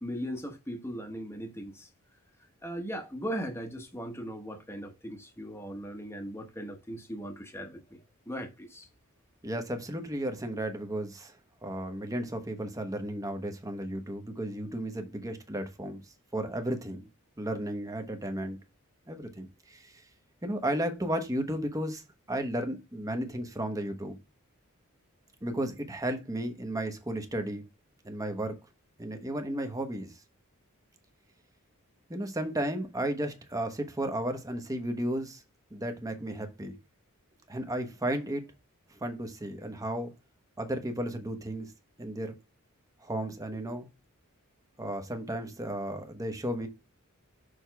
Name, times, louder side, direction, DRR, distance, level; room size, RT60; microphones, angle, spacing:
voice 1, 0.0-1.9 2.6-8.0 8.3-8.9, equal, 10° left, 1.1 m, -38 dB
voice 2, 9.4-11.3 11.6-16.0 16.3-17.0 17.4-18.6 19.1-20.0 20.4-22.0 22.3-24.2 25.4-27.6 28.0-28.6 29.0-30.1 32.1-35.4 35.7-36.7 37.5-38.5 38.9-40.1 40.6-41.7 42.0-42.4 43.0-43.9 44.8-46.7, right 1 dB, 15° right, 1.1 m, -34 dB
6.5 x 3.5 x 4.6 m
head